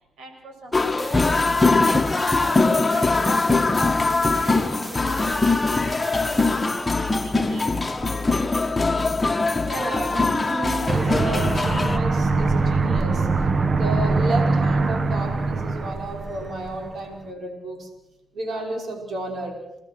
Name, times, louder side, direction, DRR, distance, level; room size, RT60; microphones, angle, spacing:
voice 1, 0.2-2.0 2.4-3.4 4.3-6.6 7.0-8.0, right 3 dB, 85° right, 5 dB, 6.5 m, -43 dB
sound 1, 0.7-12.0, left 3 dB, 20° left, 1.7 m, -22 dB
sound 2, 0.7-6.7, right 1 dB, 15° right, 1.8 m, -40 dB
voice 2, 9.6-13.3 13.6-17.9 18.3-19.6, right 2 dB, 65° right, 2 dB, 5.7 m, -31 dB
Aircraft, 10.9-17.0, right 3 dB, 45° right, 1.3 m, -22 dB
29.5 x 19.5 x 6.3 m, 0.92 s
cardioid pair, 85°, 0 cm